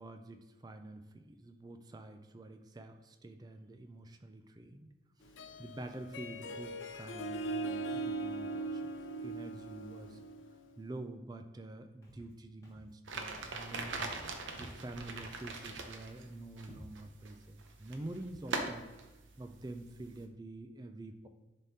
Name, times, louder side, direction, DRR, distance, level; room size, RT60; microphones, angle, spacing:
voice 1, 0.0-4.9 5.6-8.9 9.2-10.2 10.8-14.1 14.6-18.8 19.4-21.3, right 2 dB, 20° right, 7 dB, 0.3 m, -47 dB
Harp, 5.2-10.8, right 2 dB, 85° left, 0.5 m, -40 dB
Walk footsteps, 12.0-12.3 12.6-12.9 13.2-13.5 13.8-14.1 14.4-15.3 15.6-16.0 16.3-16.4 16.6-17.1 17.7-17.8 18.1-18.4, equal, 15° left, 1.4 m, -56 dB
sound 1, 13.1-20.2, right 3 dB, 80° right, 0.8 m, -43 dB
10.5 x 3.6 x 2.8 m, 1.1 s
head